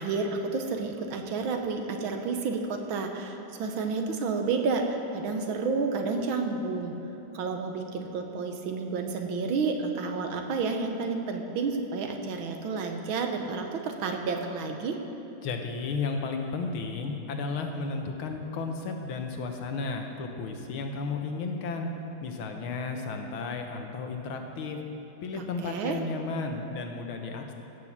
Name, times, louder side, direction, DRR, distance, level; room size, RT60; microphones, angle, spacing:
voice 1, 0.0-7.0 7.3-15.0 25.3-26.0, right 4 dB, 80° right, 4 dB, 1.8 m, -30 dB
voice 2, 15.4-21.9 22.2-24.8 25.2-27.5, left 4 dB, 90° left, 4 dB, 1.9 m, -33 dB
16.0 x 6.4 x 7.3 m, 2.9 s
omnidirectional pair, 2.2 m